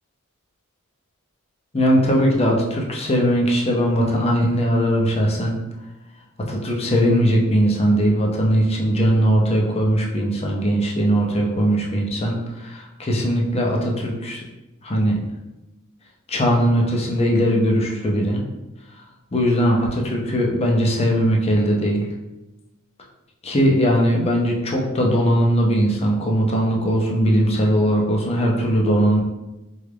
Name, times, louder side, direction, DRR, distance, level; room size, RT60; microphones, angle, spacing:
voice 1, 1.7-5.5 6.5-14.4 14.8-15.2 16.3-18.4 19.3-22.0 23.4-29.2, equal, 25° left, -1 dB, 0.5 m, -19 dB
3.3 x 2.3 x 3.3 m, 1.0 s
head